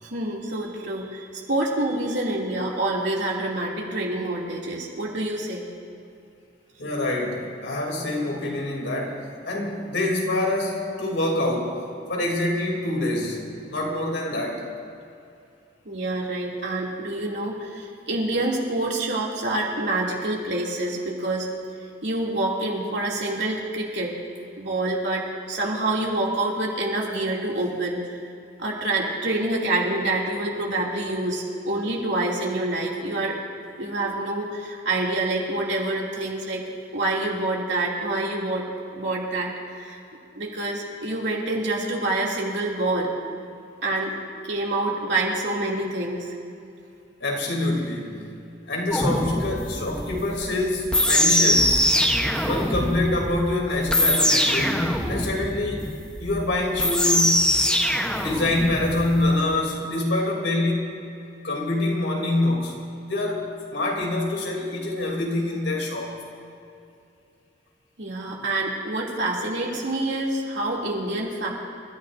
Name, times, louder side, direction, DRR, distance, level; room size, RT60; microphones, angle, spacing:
voice 1, 0.0-5.6 15.8-21.5 22.0-24.1 24.6-28.2 28.6-33.4 33.8-36.6 36.9-38.6 38.9-40.0 40.4-43.1 43.8-44.2 44.4-46.3 68.0-71.5, right 2 dB, 65° right, -3 dB, 2.9 m, -27 dB
voice 2, 6.8-11.8 12.1-14.7 47.2-48.2 48.7-51.9 52.4-55.8 56.2-57.5 58.2-60.9 61.4-66.1, left 2 dB, 80° left, -1 dB, 3.3 m, -26 dB
sound 1, 48.9-59.4, left 1 dB, 5° left, 1.1 m, -23 dB
28.5 x 14.5 x 2.7 m, 2.6 s
head